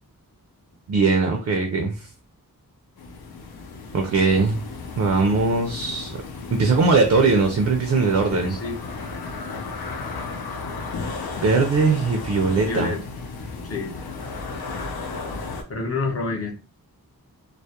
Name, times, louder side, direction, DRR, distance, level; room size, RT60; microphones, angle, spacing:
voice 1, 0.9-2.1 3.9-4.6 5.0-6.2 6.5-8.6 11.4-12.9, right 4 dB, 50° right, 4 dB, 0.4 m, -20 dB
sound 1, 3.0-15.6, left 4 dB, 85° left, 0.6 m, -34 dB
voice 2, 8.3-8.8 12.6-13.0 13.6-14.0 15.7-16.6, left 3 dB, 40° left, 1 dB, 0.6 m, -28 dB
2.3 x 2.0 x 2.7 m, 0.33 s
wide cardioid pair, 140°, 36 cm